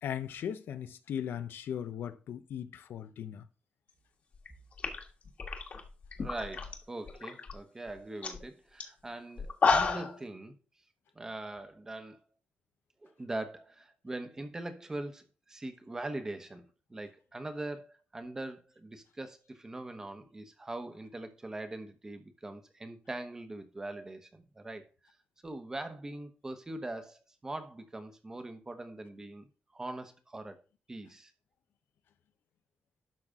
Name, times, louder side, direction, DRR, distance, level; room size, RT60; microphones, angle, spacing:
voice 1, 0.0-3.5, left 9 dB, 85° left, 0.8 m, -38 dB
sound 1, 4.4-4.5 4.8-6.8 7.1-7.5 7.9-8.0 8.2-8.4 8.8-8.9 9.4-10.2, left 4 dB, 40° left, 1.5 m, -30 dB
voice 2, 6.2-10.6 11.1-12.2 13.0-16.6 16.9-24.8 25.4-29.5 29.7-30.6 30.9-31.3, right 2 dB, 15° right, 1.1 m, -42 dB
12.0 x 5.8 x 3.7 m
wide cardioid pair, 180°, 4 cm